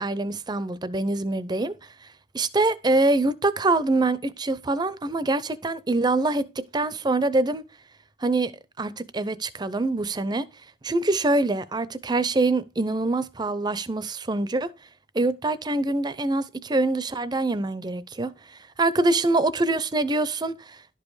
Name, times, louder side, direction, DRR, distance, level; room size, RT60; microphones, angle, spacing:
voice 1, 0.0-1.7 2.3-7.6 8.2-8.5 8.8-10.4 10.8-14.7 15.1-18.3 18.8-20.5, right 2 dB, 20° right, 0.6 m, -24 dB
11.5 x 5.3 x 4.8 m
head